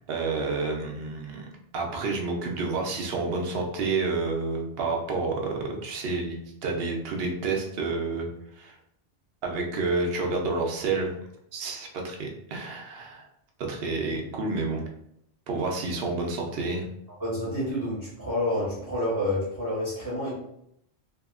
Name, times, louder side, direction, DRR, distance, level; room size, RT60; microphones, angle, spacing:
voice 1, 0.1-1.5 1.7-8.3 8.6-8.8 9.4-11.1 11.5-13.3 13.6-14.8 15.5-16.9, right 3 dB, 65° right, 1 dB, 0.8 m, -29 dB
voice 2, 17.2-20.3, left 1 dB, 20° right, -8 dB, 0.9 m, -29 dB
2.8 x 2.7 x 2.4 m, 0.75 s
omnidirectional pair, 1.1 m